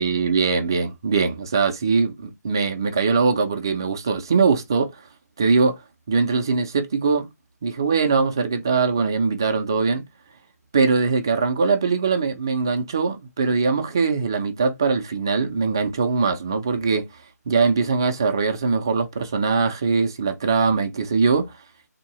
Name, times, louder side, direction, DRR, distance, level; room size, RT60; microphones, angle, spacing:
voice 1, 0.0-5.0 5.4-5.8 6.1-7.3 7.6-10.1 10.7-17.1 17.5-21.5, right 4 dB, 15° right, 0.3 m, -21 dB
3.6 x 2.7 x 2.9 m
figure-of-eight pair, 165°, 9 cm